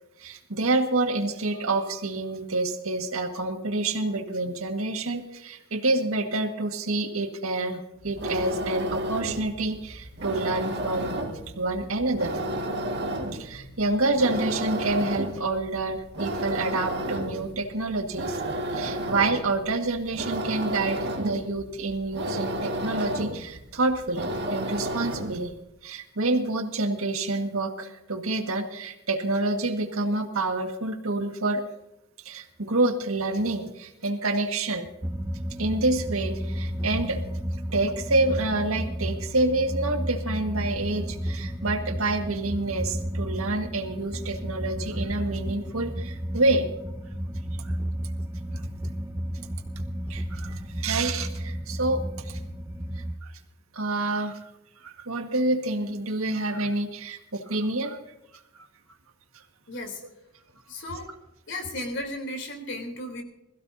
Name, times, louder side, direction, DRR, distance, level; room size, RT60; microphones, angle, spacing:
voice 1, 0.2-11.2 11.6-12.4 13.3-18.4 18.7-25.5 25.8-31.6 32.2-34.9 35.6-37.2 37.7-46.7 48.5-48.7 50.1-52.4 53.0-53.3 53.7-54.4 54.8-58.0 58.6-58.7, right 2 dB, 85° right, 5 dB, 1.7 m, -28 dB
sound 1, 8.0-25.5, right 1 dB, 50° right, 1.8 m, -32 dB
sound 2, 35.0-53.2, equal, 10° right, 0.6 m, -32 dB
voice 2, 59.7-60.0 60.7-61.1 61.5-63.2, left 1 dB, 60° left, 4 dB, 3.4 m, -34 dB
21.5 x 15.5 x 2.7 m, 0.89 s
head